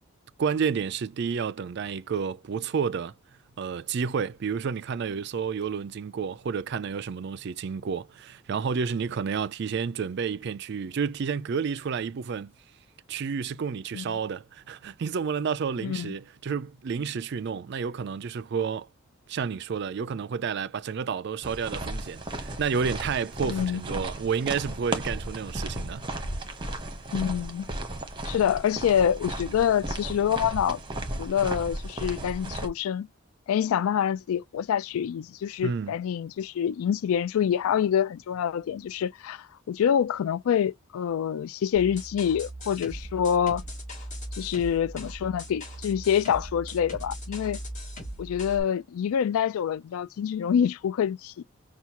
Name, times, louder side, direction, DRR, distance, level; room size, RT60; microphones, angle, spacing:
voice 1, 0.4-3.1 3.6-12.5 13.1-18.9 19.3-26.1 35.6-35.9, right 6 dB, 50° right, 0.3 m, -30 dB
voice 2, 15.8-16.1 23.4-23.8 27.1-27.7 28.2-30.8 31.2-33.1 33.5-43.6 44.4-47.6 48.2-51.4, left 8 dB, 75° left, 0.3 m, -26 dB
sound 1, 21.4-32.7, right 1 dB, 20° right, 0.9 m, -35 dB
sound 2, 41.8-48.6, equal, 35° left, 1.7 m, -39 dB
5.7 x 2.3 x 2.8 m
head